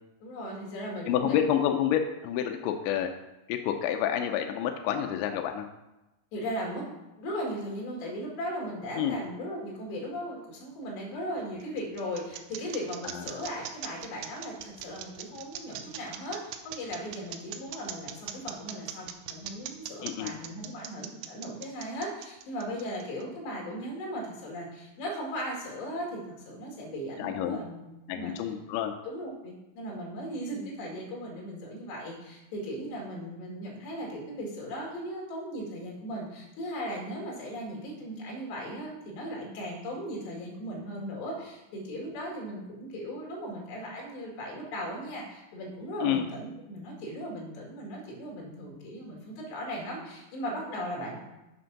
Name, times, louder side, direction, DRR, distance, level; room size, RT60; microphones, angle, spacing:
voice 1, 0.2-1.6 6.3-6.9 7.2-28.4 29.0-51.2, equal, 60° left, -2 dB, 4.0 m, -37 dB
voice 2, 1.1-3.1 3.5-5.7 9.0-9.2 13.1-13.2 20.0-20.3 27.2-27.6 28.1-28.9 46.0-46.3, left 10 dB, 85° left, 5 dB, 2.6 m, -28 dB
sound 1, 11.2-23.2, right 11 dB, 85° right, 3.2 m, -40 dB
7.7 x 5.9 x 5.9 m, 0.97 s
omnidirectional pair, 5.9 m